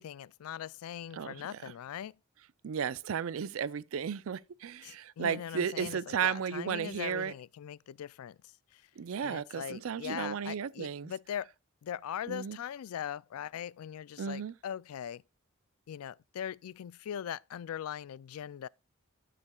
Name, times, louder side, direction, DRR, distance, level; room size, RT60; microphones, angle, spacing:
voice 1, 0.0-2.2 4.8-8.4 8.7-8.8 9.2-11.5 11.8-15.2 15.9-18.7, left 9 dB, 80° left, 0.3 m, -40 dB
voice 2, 1.1-1.6 2.6-7.3 9.0-11.1 12.3-12.6 14.2-14.5, right 7 dB, 65° right, 0.4 m, -34 dB
12.5 x 6.7 x 2.3 m
head